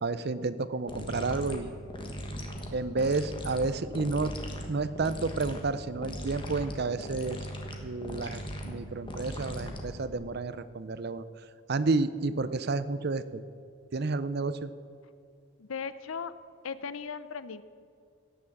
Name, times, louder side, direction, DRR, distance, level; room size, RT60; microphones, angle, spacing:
voice 1, 0.0-1.7 2.7-4.3 4.7-7.4 7.8-13.4 13.9-14.7, right 3 dB, 50° right, 14 dB, 0.5 m, -31 dB
sound 1, 0.9-10.2, equal, 25° left, 1.3 m, -39 dB
voice 2, 15.6-16.3 16.6-17.6, left 6 dB, 75° left, 14 dB, 0.6 m, -37 dB
17.0 x 7.0 x 7.3 m, 2.4 s
head